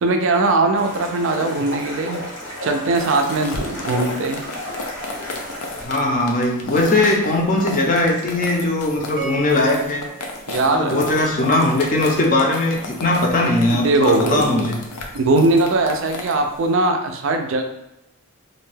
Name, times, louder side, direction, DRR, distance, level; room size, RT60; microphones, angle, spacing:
voice 1, 0.0-2.2 2.6-4.4 10.5-11.2 13.4-14.5 15.1-17.6, right 2 dB, 60° right, 4 dB, 0.3 m, -20 dB
sound 1, 0.7-5.9, left 1 dB, 70° left, 1.0 m, -33 dB
sound 2, 2.9-16.7, left 2 dB, 90° left, 0.5 m, -34 dB
voice 2, 5.8-10.0 10.7-14.8, left 2 dB, 35° left, 0 dB, 0.5 m, -19 dB
sound 3, 9.2-11.5, right 4 dB, 20° right, 0.7 m, -36 dB
2.6 x 2.2 x 3.2 m, 0.88 s
head